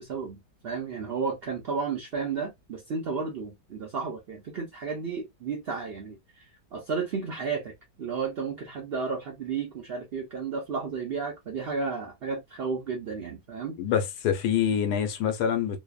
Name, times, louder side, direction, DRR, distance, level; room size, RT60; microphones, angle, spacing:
voice 1, 0.0-6.5 6.7-13.8, right 5 dB, 90° right, 0.5 m, -33 dB
voice 2, 13.8-15.8, left 8 dB, 80° left, 1.1 m, -26 dB
2.8 x 2.0 x 2.2 m
omnidirectional pair, 1.7 m